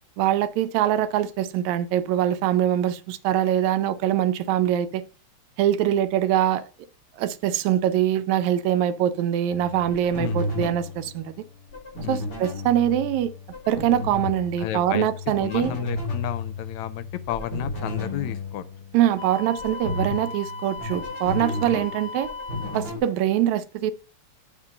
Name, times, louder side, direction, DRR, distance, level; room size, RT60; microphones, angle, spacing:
voice 1, 0.2-5.0 5.6-6.6 7.2-11.3 12.1-13.3 13.7-15.7 18.9-22.3 22.7-23.9, right 11 dB, 80° right, 1.9 m, -23 dB
sound 1, 9.5-23.0, left 2 dB, 35° left, 3.9 m, -33 dB
voice 2, 10.2-10.7 12.0-12.3 14.6-15.1 15.4-18.7, left 12 dB, 85° left, 1.9 m, -32 dB
Wind instrument woodwind instrument, 19.2-22.9, left 3 dB, 60° left, 1.8 m, -37 dB
8.3 x 3.7 x 6.3 m
omnidirectional pair, 3.3 m